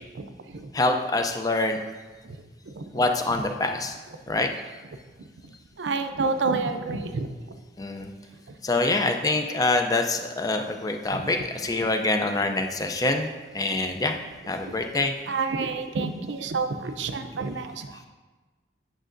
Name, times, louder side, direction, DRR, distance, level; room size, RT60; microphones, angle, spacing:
voice 1, 0.7-1.8 2.9-4.0 4.3-4.5 7.8-8.1 8.6-13.3 13.5-14.1 14.5-15.1, left 2 dB, 20° left, 5 dB, 0.4 m, -25 dB
voice 2, 5.8-7.3 11.1-11.2 15.3-18.1, right 4 dB, 80° right, 7 dB, 0.5 m, -28 dB
8.7 x 6.1 x 2.6 m, 1.3 s
head